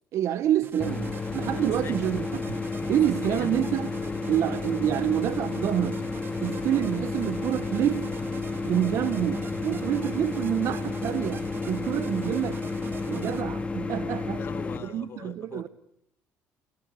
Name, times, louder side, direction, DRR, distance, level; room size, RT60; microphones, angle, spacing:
voice 1, 0.1-2.6 2.9-3.9 4.3-6.1 6.4-8.1 8.6-12.7 13.1-14.4 14.8-15.7, right 11 dB, 65° right, 0.9 m, -27 dB
sound 1, 0.6-13.4, right 6 dB, 45° right, 1.9 m, -44 dB
sound 2, 0.8-14.8, left 3 dB, 25° left, 2.4 m, -32 dB
voice 2, 1.6-2.0 2.9-3.8 4.1-4.2 14.3-15.7, left 7 dB, 45° left, 2.1 m, -41 dB
28.5 x 18.5 x 8.2 m
cardioid pair, 110°, 5 cm